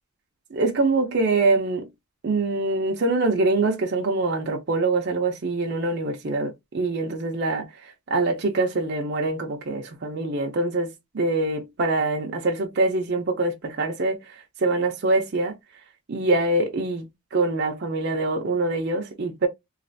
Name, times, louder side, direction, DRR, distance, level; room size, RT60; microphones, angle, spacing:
voice 1, 0.5-1.9 2.2-15.6 16.1-19.5, right 2 dB, 50° right, 0.5 m, -24 dB
3.2 x 2.3 x 2.6 m
head